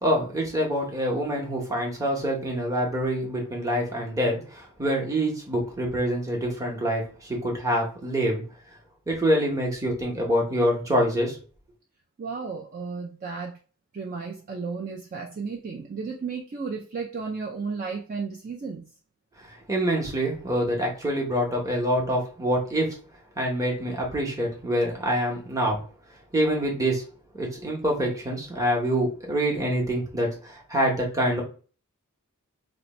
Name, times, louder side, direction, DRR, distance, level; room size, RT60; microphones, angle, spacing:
voice 1, 0.0-8.4 9.1-11.4 19.7-22.9 23.4-25.8 26.3-27.0 27.3-31.4, equal, 15° right, -1 dB, 0.9 m, -26 dB
voice 2, 12.2-13.6 13.9-18.9, right 4 dB, 35° right, 0 dB, 0.4 m, -33 dB
2.8 x 2.1 x 4.1 m, 0.38 s
head